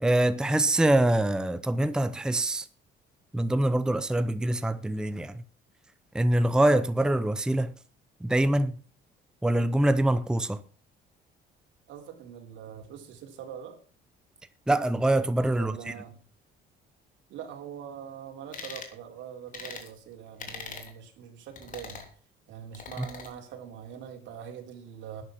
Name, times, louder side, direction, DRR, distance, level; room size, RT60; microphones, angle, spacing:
voice 1, 0.0-2.7 3.3-5.4 6.1-7.7 8.2-8.8 9.4-10.6 14.7-15.7 23.0-23.1, right 1 dB, 5° right, 0.7 m, -24 dB
voice 2, 11.9-13.8 15.6-16.2 17.3-22.0 22.5-25.2, right 8 dB, 75° right, 3.5 m, -43 dB
sound 1, 18.5-18.9 19.5-19.9 20.4-20.9 21.6-22.1 22.7-23.3, left 5 dB, 45° left, 3.3 m, -41 dB
12.0 x 9.7 x 5.9 m
cardioid pair, 120°, 20 cm